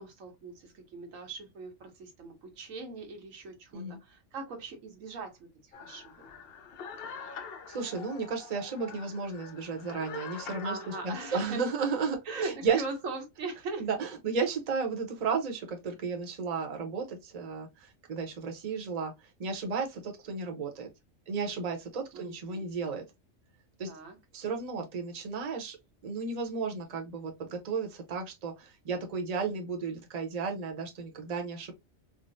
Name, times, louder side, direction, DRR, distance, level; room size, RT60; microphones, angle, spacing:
voice 1, 0.0-5.5 5.7-6.2 10.6-11.6 12.2-13.9 22.1-22.7 23.9-24.2, right 3 dB, 80° right, 1.3 m, -40 dB
sound 1, 5.7-11.4, left 6 dB, 60° left, 0.7 m, -45 dB
voice 2, 7.7-10.8 11.0-12.8 13.8-19.1 19.4-20.9 21.3-23.0 23.8-23.9 24.3-25.8 26.0-31.7, right 5 dB, 35° right, 0.7 m, -33 dB
3.7 x 2.0 x 2.5 m
omnidirectional pair, 1.3 m